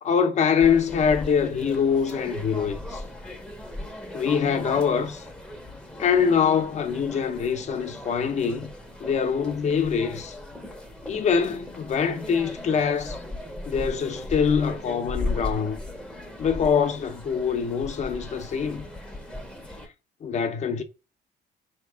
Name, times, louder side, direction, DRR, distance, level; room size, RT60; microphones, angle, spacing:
voice 1, 0.0-3.0 4.1-5.3 6.0-8.7 9.0-10.4 11.0-13.2 13.7-15.8 16.4-18.8 20.2-20.8, left 6 dB, 45° left, 0.7 m, -24 dB
sound 1, 0.6-19.9, left 2 dB, 5° left, 0.7 m, -37 dB
4.1 x 2.9 x 3.4 m
cardioid pair, 110°, 17 cm